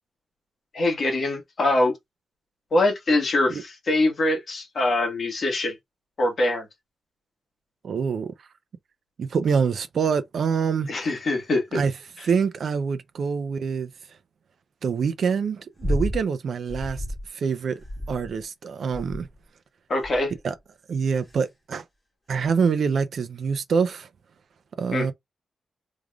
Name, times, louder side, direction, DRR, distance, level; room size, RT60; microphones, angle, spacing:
voice 1, 0.7-1.9 2.7-5.7 6.2-6.7 10.9-11.8 19.9-20.3 24.9-25.1, left 2 dB, 45° left, 1.6 m, -23 dB
voice 2, 7.8-8.3 9.2-10.9 11.7-11.9 12.2-13.9 14.8-17.0 17.3-17.8 18.1-19.3 20.4-20.5 20.9-21.8 22.3-24.1 24.8-25.1, right 6 dB, 60° right, 0.6 m, -25 dB
sound 1, 15.8-16.2 16.7-17.3 17.8-18.4 18.9-19.4 20.0-20.4 21.1-21.4 22.4-22.5, equal, 15° left, 2.2 m, -31 dB
3.6 x 3.4 x 2.4 m
wide cardioid pair, 165°, 0 cm